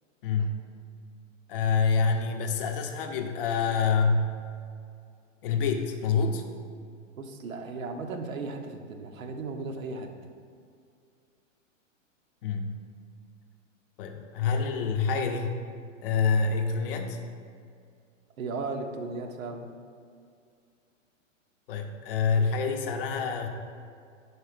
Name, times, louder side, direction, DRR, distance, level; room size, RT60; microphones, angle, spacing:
voice 1, 0.2-0.6 1.5-4.3 5.4-6.4 12.4-12.8 14.0-15.6 16.0-17.2 21.7-23.5, left 5 dB, 45° left, 4 dB, 0.6 m, -26 dB
voice 2, 7.2-10.1 18.4-19.7, right 3 dB, 85° right, 4 dB, 0.9 m, -36 dB
4.7 x 4.5 x 4.9 m, 2.3 s
hypercardioid pair, 145°, 39 cm